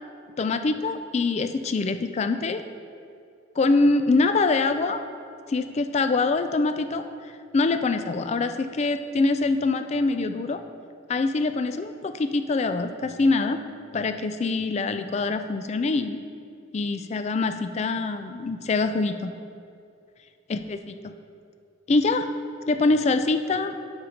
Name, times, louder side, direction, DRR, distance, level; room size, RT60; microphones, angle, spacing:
voice 1, 0.4-2.6 3.6-5.0 5.5-7.0 7.5-10.6 11.1-13.6 13.9-16.2 16.7-19.3 20.5-21.1 21.9-22.3 22.7-23.7, left 3 dB, 35° left, 9 dB, 0.3 m, -24 dB
7.9 x 4.4 x 5.0 m, 2.4 s
head